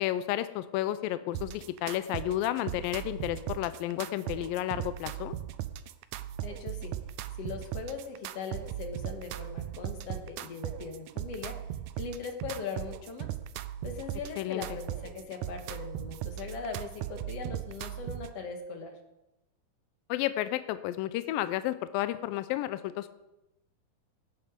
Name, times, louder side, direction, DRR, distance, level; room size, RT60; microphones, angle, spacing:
voice 1, 0.0-5.3 14.4-14.6 20.1-23.1, left 14 dB, 85° left, 12 dB, 2.3 m, -32 dB
sound 1, 1.3-18.3, right 12 dB, 85° right, 1.7 m, -38 dB
voice 2, 6.4-6.9 7.3-11.6 12.0-13.3 13.8-19.0, left 5 dB, 55° left, 4 dB, 2.1 m, -40 dB
17.5 x 8.0 x 5.1 m, 0.93 s
omnidirectional pair, 4.0 m